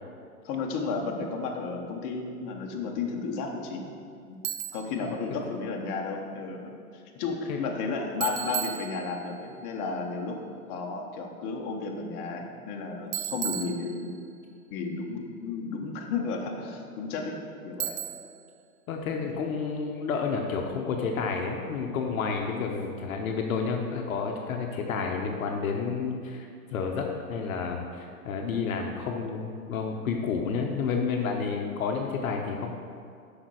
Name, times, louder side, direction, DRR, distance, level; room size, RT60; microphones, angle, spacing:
voice 1, 0.4-3.9 4.3-4.4 4.7-10.4 10.7-14.2 14.7-18.0 19.3-19.4, left 4 dB, 35° left, 1 dB, 1.1 m, -33 dB
Bicycle, 4.4-5.0 8.2-9.4 13.1-14.4 17.8-18.5, right 10 dB, 40° right, 0.5 m, -34 dB
voice 2, 18.9-32.7, left 5 dB, 60° left, 2 dB, 1.0 m, -30 dB
6.4 x 5.3 x 6.2 m, 2.3 s
hypercardioid pair, 125°, 45 cm